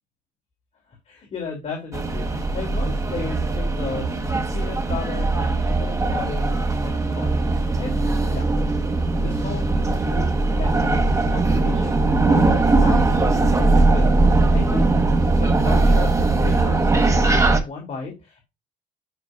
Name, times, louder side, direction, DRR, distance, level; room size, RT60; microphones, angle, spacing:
voice 1, 1.1-4.2 4.5-6.5 6.8-7.3 7.8-8.0 8.3-8.5 9.2-14.2 14.5-14.8 15.4-18.4, left 4 dB, 40° left, 0 dB, 2.8 m, -35 dB
sound 1, 1.9-17.6, right 2 dB, 20° right, 1.3 m, -20 dB
9.9 x 6.0 x 2.5 m, 0.24 s
cardioid pair, 110°, 17 cm